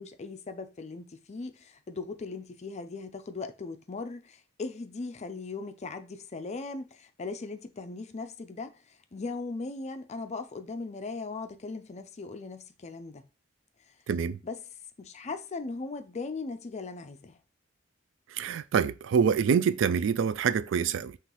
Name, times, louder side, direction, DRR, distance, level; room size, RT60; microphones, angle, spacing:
voice 1, 0.0-13.3 13.9-14.0 14.4-14.6 15.0-17.4, left 3 dB, 35° left, 0.5 m, -38 dB
voice 2, 14.1-14.4 18.3-21.2, right 7 dB, 70° right, 0.3 m, -26 dB
5.6 x 3.0 x 3.0 m
head